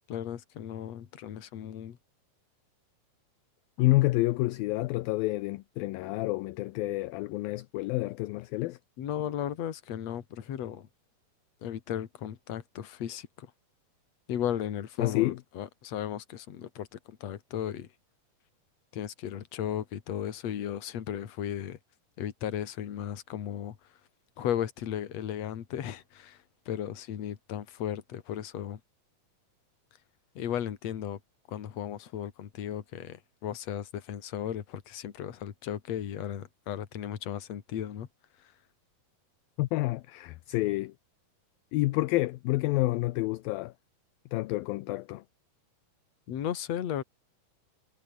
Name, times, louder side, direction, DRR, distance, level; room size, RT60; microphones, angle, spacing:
voice 1, 0.1-2.0 9.0-10.9 11.6-13.5 14.3-17.9 18.9-21.8 22.2-23.8 24.4-28.8 30.3-31.2 31.5-38.1 38.4-38.5 46.3-47.0, left 10 dB, 50° left, 2.6 m, -35 dB
voice 2, 3.8-8.8 15.0-15.3 39.6-40.9 41.7-43.7 44.3-45.2, left 19 dB, 80° left, 2.3 m, -28 dB
omnidirectional pair, 4.5 m